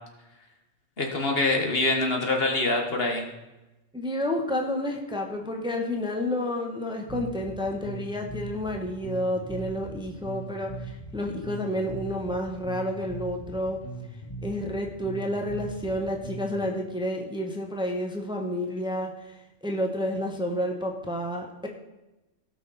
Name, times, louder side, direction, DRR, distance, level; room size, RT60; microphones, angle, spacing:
voice 1, 1.0-3.2, left 2 dB, 55° left, 2 dB, 1.8 m, -25 dB
voice 2, 3.9-13.8 14.4-21.7, left 1 dB, 5° right, 1 dB, 1.2 m, -30 dB
Bass guitar, 7.1-16.7, right 2 dB, 20° left, 1.4 m, -40 dB
17.0 x 6.3 x 4.2 m, 1.0 s
omnidirectional pair, 1.2 m